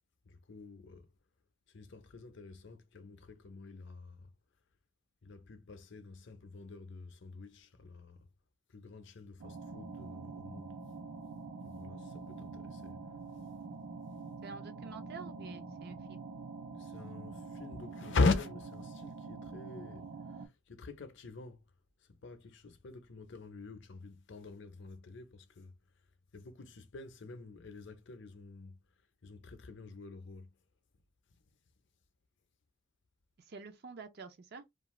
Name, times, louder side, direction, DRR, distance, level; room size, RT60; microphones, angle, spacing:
voice 1, 0.3-1.1 1.7-4.3 5.2-8.3 8.7-10.7 11.6-13.0 16.7-21.6 22.0-25.7 26.3-28.8 29.2-30.5, left 3 dB, 55° left, 0.5 m, -41 dB
sound 1, 9.4-20.5, right 4 dB, 80° right, 0.7 m, -45 dB
voice 2, 14.4-16.2 33.4-34.6, right 4 dB, 45° right, 0.4 m, -48 dB
2.4 x 2.4 x 3.0 m
head